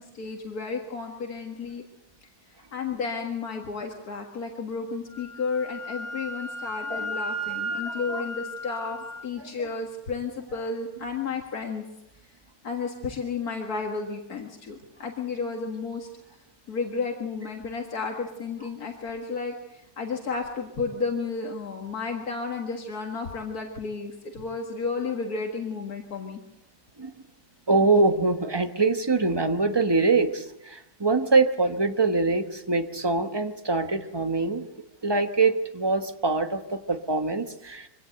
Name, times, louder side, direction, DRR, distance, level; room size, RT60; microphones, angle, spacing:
voice 1, 0.0-1.8 2.7-11.8 12.6-16.1 16.7-26.4, left 4 dB, 80° left, 2 dB, 2.3 m, -32 dB
Wind instrument woodwind instrument, 5.1-9.3, equal, 65° right, 7.7 m, -34 dB
voice 2, 6.9-7.2 7.9-8.2 27.0-27.1 27.7-34.7 35.0-37.9, right 3 dB, 20° right, 7 dB, 1.2 m, -24 dB
24.0 x 17.5 x 7.9 m, 0.90 s
omnidirectional pair, 1.6 m